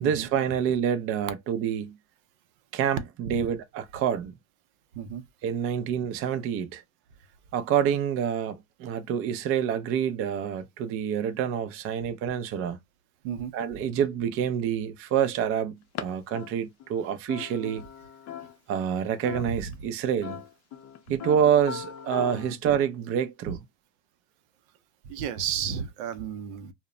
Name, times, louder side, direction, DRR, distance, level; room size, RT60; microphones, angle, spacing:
voice 1, 0.0-2.0 2.7-4.3 5.4-6.8 7.5-12.8 13.5-17.8 18.7-20.4 21.1-23.6, right 8 dB, 35° right, 0.4 m, -27 dB
sound 1, 15.9-16.0 16.3-18.9 19.2-19.7 20.2-22.5, left 9 dB, 40° left, 0.5 m, -39 dB
voice 2, 25.1-26.7, right 8 dB, 80° right, 0.6 m, -33 dB
2.1 x 2.1 x 3.6 m
supercardioid pair, 115°, 40 cm